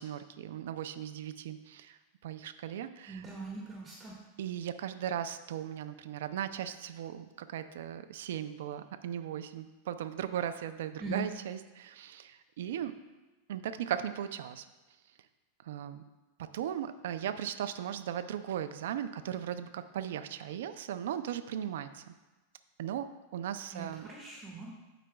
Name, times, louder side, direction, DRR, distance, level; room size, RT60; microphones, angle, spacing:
voice 1, 0.0-3.2 4.4-13.0 13.5-14.7 15.6-16.0 16.4-22.1 22.8-24.1, right 10 dB, 75° right, 10 dB, 0.5 m, -37 dB
voice 2, 3.1-4.1 11.0-11.3 23.7-24.7, right 3 dB, 25° right, -4 dB, 1.6 m, -41 dB
15.0 x 5.0 x 2.3 m, 1.2 s
hypercardioid pair, 115°, 0 cm